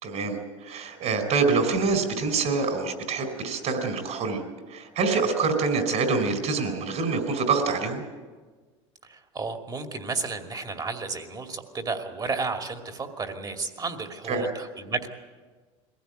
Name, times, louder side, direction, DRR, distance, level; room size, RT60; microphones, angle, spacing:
voice 1, 0.0-4.4 4.7-8.0 14.3-14.5, right 4 dB, 50° right, 6 dB, 4.5 m, -26 dB
voice 2, 9.0-15.1, right 4 dB, 25° right, 5 dB, 2.6 m, -32 dB
22.0 x 16.0 x 9.3 m, 1.4 s
hypercardioid pair, 90°, 15 cm